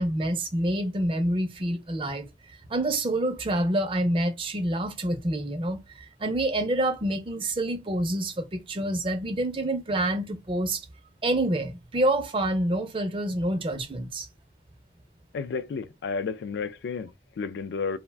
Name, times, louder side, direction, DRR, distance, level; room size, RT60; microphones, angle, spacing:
voice 1, 0.0-2.3 2.7-10.8 11.2-14.3, right 1 dB, 30° right, 0.4 m, -27 dB
voice 2, 15.3-18.0, left 5 dB, 75° left, 0.3 m, -32 dB
2.4 x 2.1 x 3.3 m
head